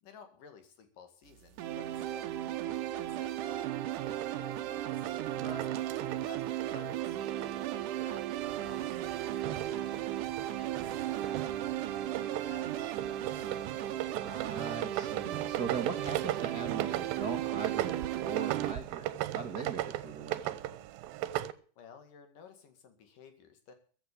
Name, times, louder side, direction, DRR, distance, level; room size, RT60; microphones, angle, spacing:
voice 1, 0.0-5.1 6.3-10.1 10.4-13.7 21.8-23.7, left 6 dB, 65° left, 8 dB, 3.6 m, -56 dB
sound 1, 1.6-18.7, right 12 dB, 75° right, 2.3 m, -35 dB
sound 2, 4.1-7.6 7.9-21.5, right 13 dB, 90° right, 2.6 m, -39 dB
voice 2, 5.3-5.9 14.2-20.6, right 5 dB, 50° right, 5 dB, 1.1 m, -40 dB
15.0 x 8.3 x 8.5 m, 0.43 s
omnidirectional pair, 4.1 m